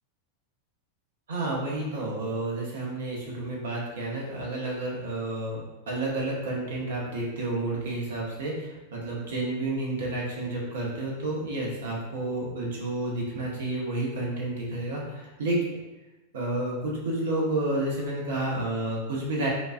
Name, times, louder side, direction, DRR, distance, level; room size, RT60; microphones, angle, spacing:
voice 1, 1.3-15.6 16.3-19.5, right 2 dB, 60° right, -3 dB, 1.0 m, -30 dB
5.1 x 2.4 x 2.4 m, 1.1 s
figure-of-eight pair, 90°, 0 cm